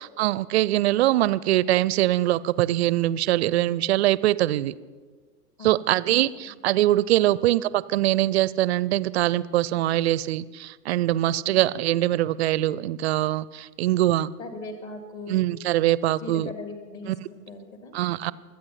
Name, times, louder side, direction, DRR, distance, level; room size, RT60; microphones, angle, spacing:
voice 1, 0.0-4.7 5.6-14.3 15.3-16.5 17.1-17.2 17.9-18.3, right 15 dB, 45° right, 20 dB, 0.5 m, -23 dB
voice 2, 5.6-6.5 7.2-7.4 11.5-11.6 14.4-15.5 16.2-18.3, left 2 dB, 40° left, 6 dB, 2.5 m, -40 dB
25.0 x 8.8 x 5.7 m, 1.4 s
figure-of-eight pair, 90°, 48 cm